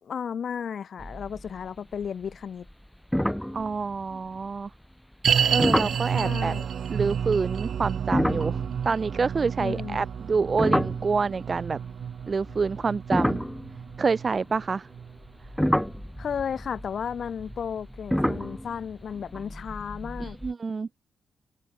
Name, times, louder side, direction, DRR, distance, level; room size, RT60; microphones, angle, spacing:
voice 1, 0.0-2.7 6.1-6.7 9.6-10.1 16.2-20.4, left 7 dB, 45° left, 5.9 m, -34 dB
sound 1, 1.0-1.7 1.9-2.3 2.7-2.8 3.1-4.4 5.6-6.1 8.0-11.6 12.3-14.6 15.2-20.5, equal, ahead, 0.4 m, -29 dB
voice 2, 3.5-4.7 5.5-6.5 6.9-11.8 12.3-13.4 14.0-14.9 20.2-20.9, right 4 dB, 30° right, 1.7 m, -27 dB
sound 2, 5.2-16.5 16.8-16.9 17.5-17.6, right 8 dB, 50° right, 0.7 m, -30 dB
wide cardioid pair, 165°, 0 cm